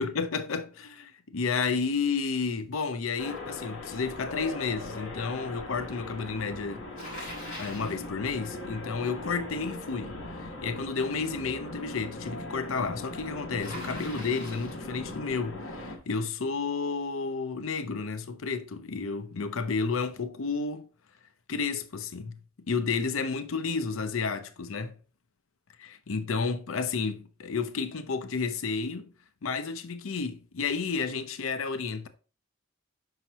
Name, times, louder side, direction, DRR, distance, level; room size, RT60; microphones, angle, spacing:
voice 1, 0.0-6.8 7.6-20.9 21.5-22.4 22.7-24.9 25.8-29.1 29.4-32.1, left 5 dB, 85° left, 0.6 m, -31 dB
sound 1, 3.2-16.0, left 2 dB, 65° left, 1.4 m, -40 dB
Bicycle, 6.9-8.1 13.6-14.8, equal, 40° left, 3.5 m, -42 dB
5.8 x 5.6 x 2.9 m
head